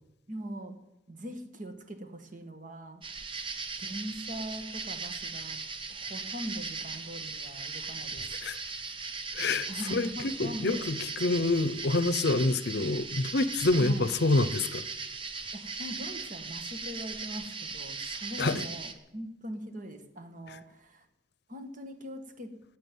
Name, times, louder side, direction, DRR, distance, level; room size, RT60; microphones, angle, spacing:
voice 1, 0.3-0.8 1.1-3.0 3.4-3.5 3.8-5.6 5.9-8.3 9.7-10.8 13.7-14.1 15.5-21.0 21.5-22.6, equal, 45° right, 1.7 m, -41 dB
sound 1, 3.0-18.9, right 4 dB, 30° right, 1.1 m, -38 dB
voice 2, 9.3-14.9 18.4-18.7 20.5-20.6, left 2 dB, 60° left, 0.7 m, -27 dB
15.0 x 8.9 x 9.4 m
head